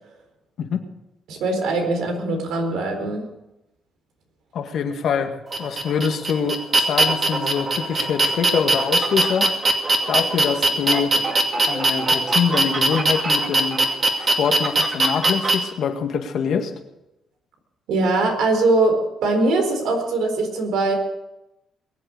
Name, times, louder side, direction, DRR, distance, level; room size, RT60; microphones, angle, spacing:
voice 1, 1.3-3.3 17.9-20.9, right 2 dB, 85° right, 4 dB, 4.2 m, -21 dB
voice 2, 4.5-9.5 10.1-11.1 11.7-13.8 14.2-16.7, left 6 dB, 70° left, 5 dB, 1.9 m, -24 dB
sound 1, 5.5-15.5, right 2 dB, 40° right, 2.5 m, -20 dB
22.5 x 8.0 x 6.7 m, 0.92 s
cardioid pair, 90°, 0 cm